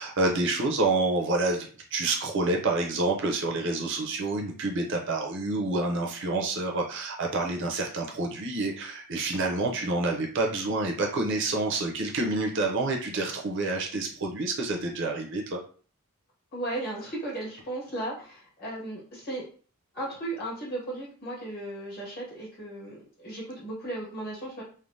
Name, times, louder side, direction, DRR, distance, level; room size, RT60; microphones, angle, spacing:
voice 1, 0.0-15.6, right 2 dB, 55° right, 1 dB, 0.5 m, -28 dB
voice 2, 16.5-19.4 19.9-24.6, right 1 dB, 45° left, -5 dB, 1.5 m, -36 dB
3.2 x 2.0 x 2.6 m, 0.41 s
head